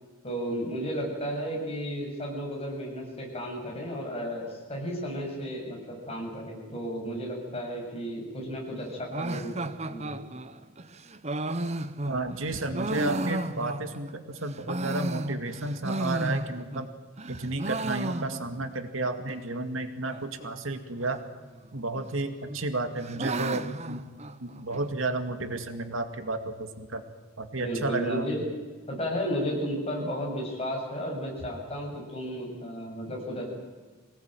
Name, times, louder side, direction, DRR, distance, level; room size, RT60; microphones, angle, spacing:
voice 1, 0.2-10.2 27.6-28.4 28.9-33.5, equal, 30° left, -1 dB, 7.5 m, -33 dB
sound 1, 9.1-14.1 14.5-16.9 17.2-18.7 19.0-19.1 19.3-19.4 20.0-20.5 21.5-22.1 22.5-24.9, right 2 dB, 30° right, 1.0 m, -33 dB
voice 2, 12.1-16.9 17.3-21.2 21.7-24.0 24.4-27.0 27.4-28.3, right 2 dB, 75° right, 7 dB, 2.3 m, -32 dB
25.0 x 18.5 x 9.2 m, 1.4 s
head